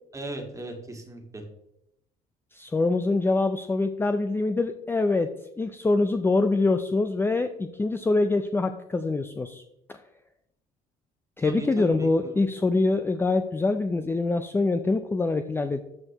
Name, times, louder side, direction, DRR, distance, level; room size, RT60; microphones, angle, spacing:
voice 1, 0.1-1.4 11.4-12.4, right 2 dB, 20° right, 3 dB, 1.7 m, -37 dB
voice 2, 2.5-9.6 9.9-10.0 11.4-15.8, left 3 dB, 15° left, 8 dB, 0.4 m, -25 dB
13.0 x 4.6 x 2.9 m, 0.82 s
cardioid pair, 110°, 17 cm